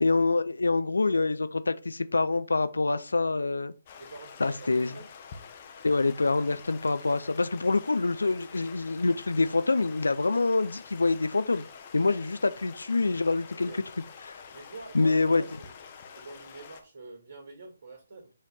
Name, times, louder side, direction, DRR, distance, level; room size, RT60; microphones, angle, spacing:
voice 1, 0.0-3.7 4.4-4.9 5.8-11.6 11.9-13.7 14.2-14.3 14.9-15.4, left 3 dB, 75° left, 0.5 m, -26 dB
Stream, 3.9-16.8, left 6 dB, 35° left, 1.1 m, -48 dB
voice 2, 4.0-5.1 13.5-13.8 14.5-15.7 16.1-18.3, right 3 dB, 50° right, 2.3 m, -46 dB
5.5 x 3.3 x 5.5 m
figure-of-eight pair, 140°, 0 cm